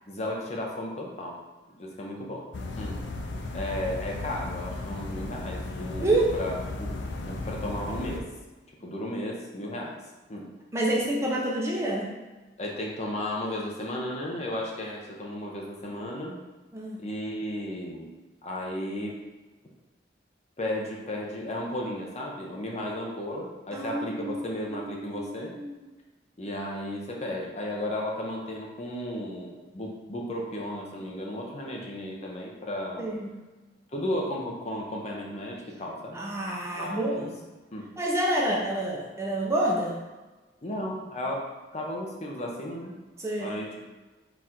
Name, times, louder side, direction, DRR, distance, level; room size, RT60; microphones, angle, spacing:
voice 1, 0.1-1.3 1.8-2.4 2.7-3.0 3.5-6.9 7.2-8.3 8.8-10.0 10.3-10.5 12.6-16.4 17.0-18.1 18.4-19.2 20.6-25.5 26.4-33.1 33.9-36.2 36.7-37.3 37.7-37.9 38.5-38.6 40.6-41.4 41.7-42.9 43.4-43.9, left 1 dB, 35° left, -1 dB, 0.7 m, -34 dB
Amsterdam at night, 2.5-8.2, left 2 dB, 75° left, 0.5 m, -35 dB
voice 2, 6.0-6.4 10.7-12.1 16.7-17.0 23.7-25.8 33.0-33.4 36.1-37.4 38.0-40.0 43.2-43.6, right 1 dB, 15° right, -2 dB, 0.5 m, -28 dB
4.0 x 2.5 x 4.2 m, 1.2 s
head